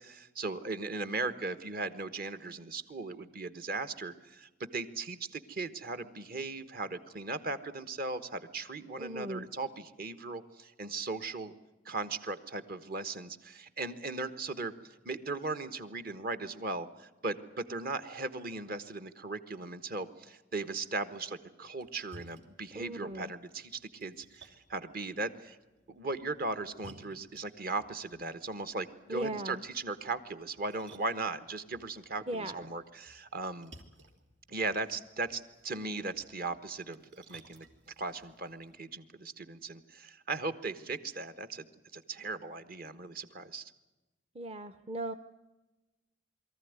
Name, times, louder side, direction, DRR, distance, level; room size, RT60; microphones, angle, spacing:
voice 1, 0.0-11.5 11.8-25.6 25.9-33.7 34.5-37.7 38.0-41.7 41.9-43.7, right 3 dB, 55° right, 12 dB, 1.3 m, -38 dB
voice 2, 9.0-9.5 22.7-23.3 29.1-29.6 32.3-32.6 44.3-45.1, right 1 dB, 30° right, 10 dB, 0.7 m, -37 dB
Splash splatter, 21.6-38.8, right 2 dB, 80° right, 2.9 m, -60 dB
23.0 x 14.5 x 9.6 m, 1.1 s
head